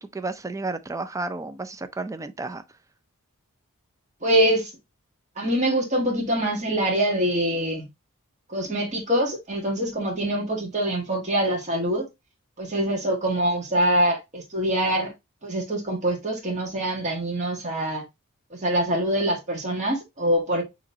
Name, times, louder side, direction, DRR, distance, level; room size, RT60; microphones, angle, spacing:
voice 1, 0.0-2.6, right 3 dB, 15° right, 0.4 m, -32 dB
voice 2, 4.2-4.7 5.4-7.8 8.5-12.1 12.6-15.1 15.4-18.0 18.5-20.6, right 1 dB, 35° right, 1.6 m, -24 dB
6.3 x 3.0 x 2.7 m
head